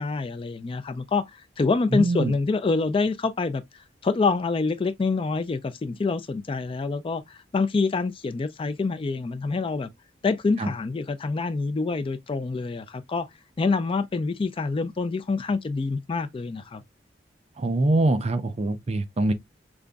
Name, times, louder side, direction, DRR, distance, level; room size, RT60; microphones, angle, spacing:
voice 1, 0.0-3.6 4.0-9.9 10.2-13.3 13.6-16.8, left 4 dB, 30° left, 0.3 m, -26 dB
voice 2, 1.9-2.3 10.6-10.7 17.6-19.3, right 2 dB, 35° right, 0.4 m, -23 dB
5.0 x 2.5 x 2.2 m
head